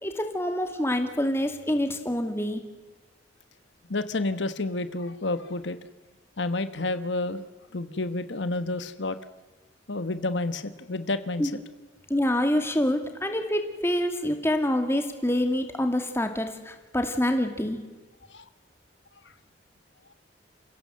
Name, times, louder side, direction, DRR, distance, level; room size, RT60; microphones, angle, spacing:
voice 1, 0.0-2.6 11.4-11.5 12.1-17.8, left 1 dB, 15° left, 6 dB, 2.3 m, -26 dB
voice 2, 3.9-5.8 6.4-7.4 7.7-9.2 9.9-11.4 18.3-18.4, left 2 dB, 75° left, 11 dB, 1.2 m, -30 dB
29.0 x 16.5 x 7.7 m, 1.3 s
head